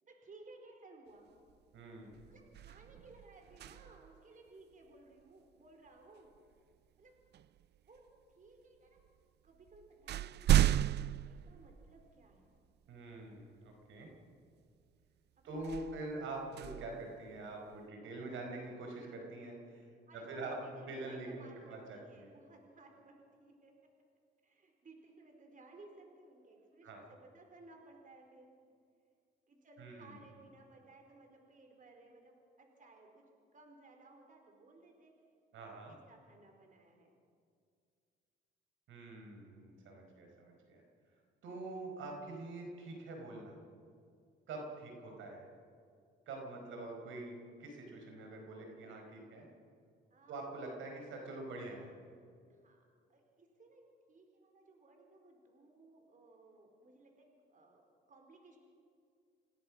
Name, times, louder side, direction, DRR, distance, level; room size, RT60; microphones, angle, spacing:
voice 1, 0.1-1.3 2.3-6.3 7.0-7.1 7.8-8.0 8.4-9.0 9.4-12.5 15.4-15.6 20.1-23.1 23.4-23.7 24.4-28.5 29.5-33.2 33.5-35.1 35.9-37.2 50.1-50.7 52.5-52.8 53.1-57.8 58.1-58.6, right 2 dB, 40° right, 3 dB, 4.4 m, -59 dB
sound 1, 1.5-1.7 2.1-4.2 6.3-6.5 7.3-8.1 9.0-9.1 9.5-12.3 12.9-13.0 15.6-17.7, right 12 dB, 60° right, 0.4 m, -34 dB
voice 2, 1.7-2.2 12.9-14.1 15.4-19.9 20.1-22.3 26.8-27.0 29.8-30.2 35.5-35.9 38.9-40.8 41.4-43.6 44.5-45.5 46.3-49.4 50.3-51.9, right 2 dB, 80° right, 2 dB, 4.7 m, -45 dB
27.0 x 17.5 x 6.2 m, 2.2 s
cardioid pair, 90°, 20 cm